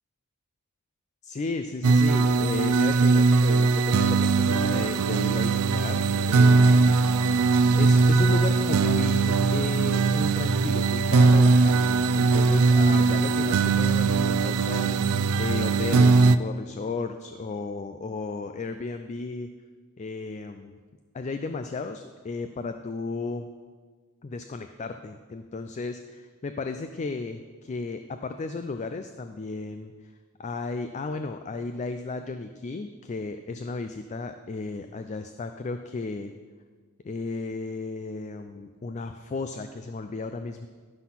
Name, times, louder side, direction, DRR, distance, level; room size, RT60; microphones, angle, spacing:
voice 1, 1.2-15.0 15.4-19.5 20.0-20.8 21.1-23.5 24.2-30.1 30.4-36.3 37.0-40.7, left 3 dB, 30° left, 8 dB, 0.3 m, -34 dB
sound 1, 1.8-16.4, right 4 dB, 85° right, 0.4 m, -20 dB
12.0 x 5.8 x 5.7 m, 1.5 s
head